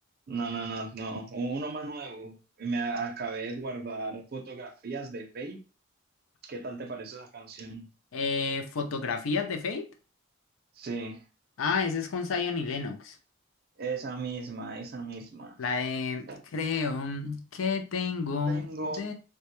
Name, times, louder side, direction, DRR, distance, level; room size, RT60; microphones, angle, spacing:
voice 1, 0.3-5.6 6.4-7.9 10.7-11.2 13.8-15.6 16.3-16.4 18.5-19.1, right 3 dB, 50° right, 0.5 m, -36 dB
voice 2, 8.1-9.9 11.6-13.2 15.6-18.7 19.0-19.1, left 4 dB, 80° left, 0.4 m, -30 dB
2.2 x 2.1 x 2.9 m
head